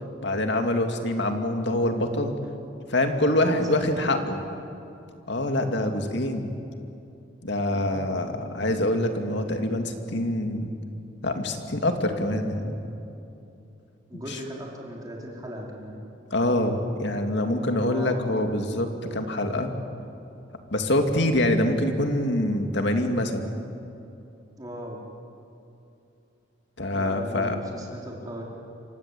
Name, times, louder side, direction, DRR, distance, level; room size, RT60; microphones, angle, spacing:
voice 1, 0.2-2.3 2.9-4.4 5.3-6.5 7.4-10.7 11.2-12.7 14.1-14.4 16.3-19.7 20.7-23.5 26.8-27.6, left 1 dB, 60° left, 5 dB, 2.4 m, -25 dB
voice 2, 3.3-4.2 7.6-8.4 14.1-15.9 17.8-18.3 24.6-25.0 26.9-28.4, equal, 20° right, -2 dB, 4.7 m, -37 dB
28.0 x 24.5 x 8.6 m, 2.7 s
head